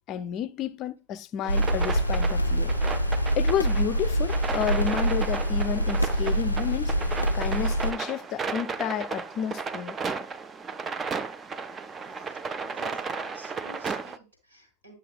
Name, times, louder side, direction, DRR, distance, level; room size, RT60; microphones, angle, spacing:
voice 1, 0.1-2.7 3.4-6.9 7.3-10.0, left 9 dB, 35° left, 0.5 m, -31 dB
sound 1, 1.4-14.2, right 5 dB, 20° right, 0.4 m, -34 dB
sound 2, 1.5-7.9, right 1 dB, 85° left, 0.4 m, -25 dB
voice 2, 12.6-15.0, equal, 75° right, 3.4 m, -51 dB
11.0 x 6.5 x 2.2 m
figure-of-eight pair, 90°, 0 cm